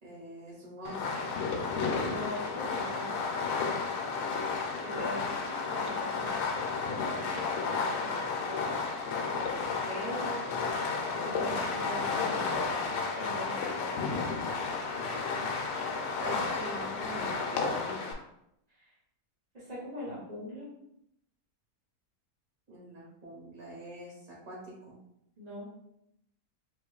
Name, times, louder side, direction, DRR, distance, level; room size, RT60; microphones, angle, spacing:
voice 1, 0.0-1.2 11.5-11.6 16.2-18.1 22.7-25.0, equal, 65° right, -4 dB, 1.9 m, -44 dB
Fireworks, 0.8-18.1, left 4 dB, 90° left, 1.2 m, -32 dB
voice 2, 2.0-3.8 4.8-6.4 7.0-8.7 9.3-10.5 11.2-12.9 13.1-14.1 18.8-18.9 19.5-20.7 25.4-25.7, equal, 30° right, -10 dB, 0.9 m, -42 dB
4.5 x 2.9 x 2.3 m, 0.78 s
omnidirectional pair, 1.6 m